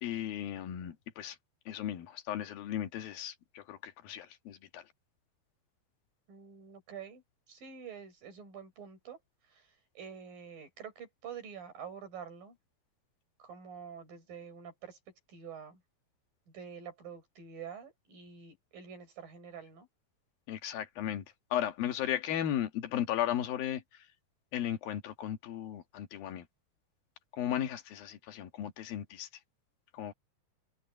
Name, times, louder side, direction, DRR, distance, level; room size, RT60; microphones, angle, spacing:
voice 1, 0.0-1.4 1.7-4.8 20.5-21.3 21.5-24.0 24.5-26.5 27.3-29.3 29.9-30.1, left 11 dB, 90° left, 3.4 m, -35 dB
voice 2, 6.3-7.2 7.5-9.2 9.4-9.7 10.0-12.6 13.4-15.0 15.3-15.8 16.5-19.9, right 7 dB, 75° right, 7.7 m, -47 dB
omnidirectional pair, 4.0 m